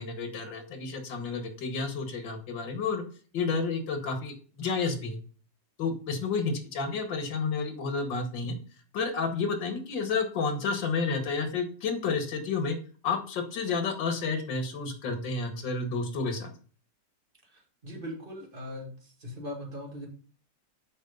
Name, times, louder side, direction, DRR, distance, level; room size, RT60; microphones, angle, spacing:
voice 1, 0.0-3.0 3.3-5.2 5.8-8.6 8.9-12.8 13.0-16.5, left 4 dB, 85° left, 7 dB, 2.1 m, -30 dB
voice 2, 17.8-18.9 19.2-20.1, left 1 dB, 30° right, -1 dB, 2.4 m, -39 dB
7.3 x 4.8 x 5.3 m, 0.40 s
omnidirectional pair, 1.9 m